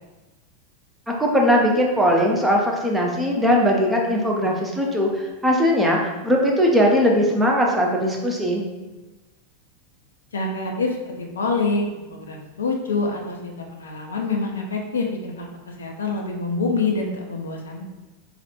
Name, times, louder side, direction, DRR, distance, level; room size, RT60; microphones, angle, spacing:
voice 1, 1.2-8.6, equal, 5° right, -2 dB, 0.7 m, -20 dB
voice 2, 10.3-17.9, left 3 dB, 70° left, 1 dB, 0.5 m, -26 dB
3.3 x 2.4 x 4.1 m, 1.1 s
figure-of-eight pair, 90°, 0 cm